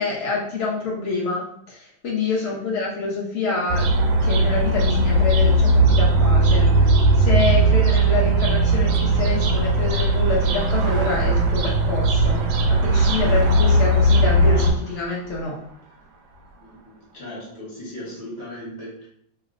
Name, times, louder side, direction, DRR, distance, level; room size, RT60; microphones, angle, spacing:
voice 1, 0.0-3.8 4.2-12.4 12.8-15.6, left 3 dB, 75° left, -4 dB, 0.6 m, -27 dB
sound 1, 3.7-14.7, right 2 dB, 85° right, 1.4 m, -18 dB
sound 2, 7.1-17.1, right 3 dB, 70° right, 1.0 m, -39 dB
voice 2, 16.5-19.1, left 1 dB, 35° left, -6 dB, 1.3 m, -38 dB
3.1 x 2.8 x 2.4 m, 0.64 s
omnidirectional pair, 2.2 m